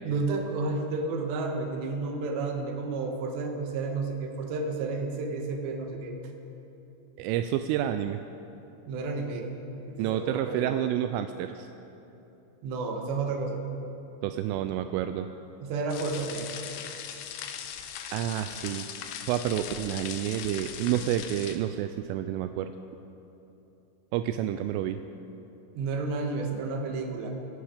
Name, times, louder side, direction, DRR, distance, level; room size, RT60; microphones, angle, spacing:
voice 1, 0.0-6.2 8.9-9.5 9.9-10.8 12.6-13.6 15.6-16.5 25.7-27.3, right 3 dB, 70° right, 3 dB, 3.3 m, -31 dB
voice 2, 7.2-8.2 10.0-11.7 14.2-15.3 18.1-18.9 19.3-22.7 24.1-25.0, right 11 dB, 85° right, 9 dB, 3.1 m, -29 dB
sound 1, 15.9-21.6, left 9 dB, 90° left, 3.4 m, -39 dB
25.0 x 11.0 x 5.1 m, 2.9 s
omnidirectional pair, 5.7 m